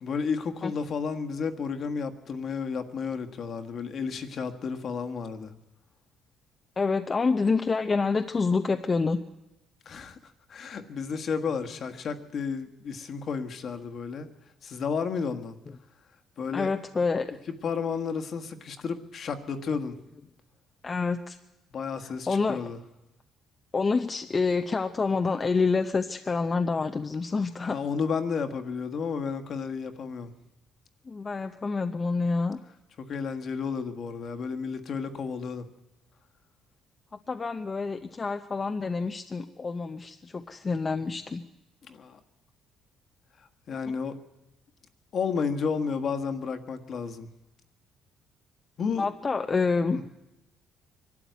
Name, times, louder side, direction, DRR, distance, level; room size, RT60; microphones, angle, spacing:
voice 1, 0.0-5.5 9.8-10.2 10.5-14.3 14.6-15.6 16.4-16.7 17.6-20.0 21.7-22.8 27.7-30.3 33.0-35.7 41.9-42.2 43.7-44.2 45.1-47.3 48.8-49.0 49.9-50.0, left 5 dB, 45° left, 6 dB, 1.5 m, -32 dB
voice 2, 6.8-9.2 16.5-17.3 20.8-21.4 22.0-22.6 23.7-27.8 31.1-32.6 37.3-41.4 43.9-44.0 49.0-50.0, left 4 dB, 25° left, 7 dB, 0.7 m, -27 dB
23.5 x 12.5 x 9.4 m, 0.94 s
cardioid pair, 135°, 0 cm